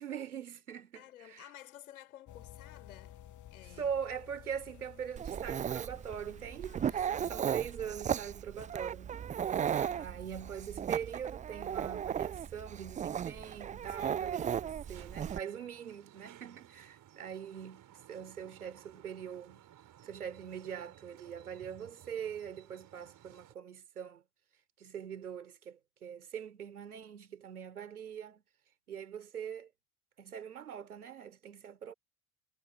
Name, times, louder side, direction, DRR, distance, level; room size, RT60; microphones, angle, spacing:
voice 1, 0.0-1.5 3.8-7.0 7.3-9.2 9.9-19.6 20.0-24.2 24.8-28.4 28.9-29.7 30.2-31.9, right 8 dB, 80° right, 4.0 m, -42 dB
voice 2, 0.9-3.2 3.5-3.9 6.6-7.4 9.7-10.5 13.9-14.5, left 12 dB, 70° left, 5.1 m, -54 dB
sound 1, 2.3-8.0, left 12 dB, 40° left, 2.3 m, -54 dB
Dog, 5.2-15.4, right 8 dB, 20° right, 0.4 m, -36 dB
sound 2, 14.2-23.5, right 12 dB, 45° right, 5.2 m, -58 dB
figure-of-eight pair, 60°, 44 cm